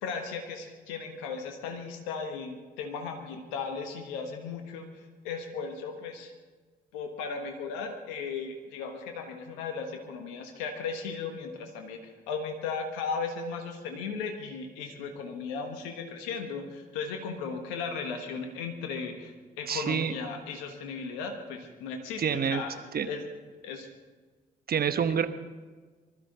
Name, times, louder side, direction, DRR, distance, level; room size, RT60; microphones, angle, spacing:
voice 1, 0.0-6.3 6.9-22.7 23.0-23.2 23.6-23.9, left 5 dB, 85° left, 4 dB, 1.4 m, -36 dB
voice 2, 19.7-20.1 22.2-22.6 22.9-23.1 24.7-25.3, right 7 dB, 55° right, 10 dB, 1.2 m, -27 dB
24.5 x 13.0 x 4.0 m, 1.4 s
hypercardioid pair, 40°, 19 cm